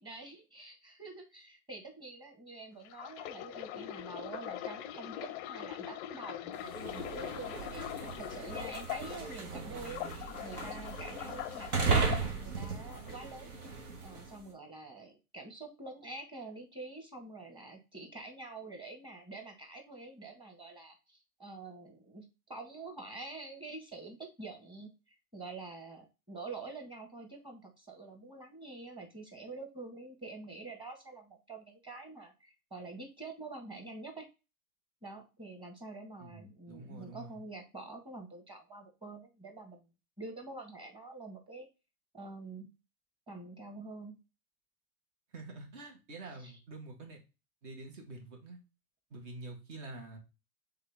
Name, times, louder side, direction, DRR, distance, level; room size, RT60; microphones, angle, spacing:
voice 1, 0.0-13.5 14.0-34.3 35.0-39.8 40.2-41.7 42.1-42.7 43.3-44.2 46.4-46.6, right 3 dB, 10° right, 2 dB, 1.6 m, -47 dB
sound 1, 2.8-9.4 9.8-12.2 12.9-13.1, left 13 dB, 40° left, 0.5 m, -42 dB
sound 2, 6.6-14.4, right 5 dB, 80° right, 1.5 m, -36 dB
voice 2, 36.2-37.4 45.3-47.2 47.6-48.6 49.1-50.2, right 2 dB, 55° right, 3 dB, 1.9 m, -47 dB
3.8 x 3.7 x 3.5 m, 0.28 s
hypercardioid pair, 100°, 44 cm